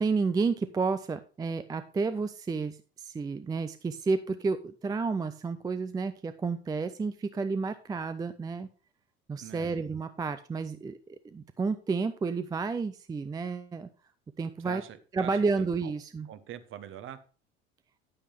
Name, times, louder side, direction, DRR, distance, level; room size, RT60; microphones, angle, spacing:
voice 1, 0.0-8.7 9.3-13.9 14.4-14.8 15.1-16.3, right 4 dB, 10° right, 11 dB, 0.5 m, -31 dB
voice 2, 9.4-9.7 14.6-15.9 16.3-17.2, right 10 dB, 40° right, 12 dB, 1.2 m, -44 dB
10.0 x 8.7 x 3.4 m, 0.37 s
figure-of-eight pair, 70°, 32 cm